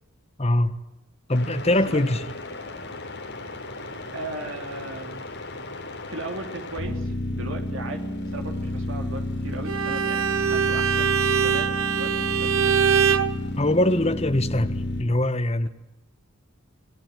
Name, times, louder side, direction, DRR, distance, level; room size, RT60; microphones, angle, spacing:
voice 1, 0.4-0.7 1.3-2.2 13.6-15.7, left 1 dB, 30° left, 1.4 m, -22 dB
sound 1, 1.3-15.0, left 1 dB, 55° left, 6.6 m, -32 dB
voice 2, 1.7-2.1 4.1-5.2 6.1-12.9, right 2 dB, 65° right, 3.3 m, -37 dB
Bowed string instrument, 9.6-13.3, right 7 dB, 80° right, 1.6 m, -23 dB
29.5 x 19.5 x 9.3 m
head